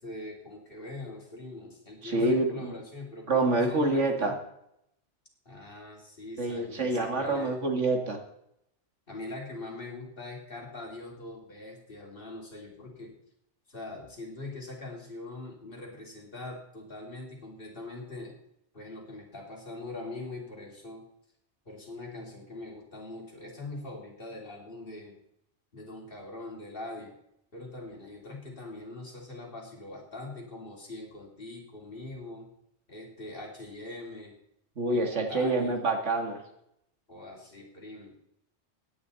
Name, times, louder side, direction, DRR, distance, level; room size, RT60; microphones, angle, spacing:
voice 1, 0.0-4.3 5.4-7.5 9.1-13.1 13.7-18.3 18.7-21.0 21.6-25.2 25.7-27.1 27.5-32.5 32.9-34.4 34.9-35.8 37.1-38.2, left 2 dB, 50° left, -1 dB, 3.1 m, -42 dB
voice 2, 2.0-2.7 3.3-4.3 6.4-8.2 34.8-36.4, right 2 dB, 80° right, 3 dB, 2.3 m, -27 dB
16.5 x 9.7 x 4.1 m, 0.76 s
omnidirectional pair, 1.2 m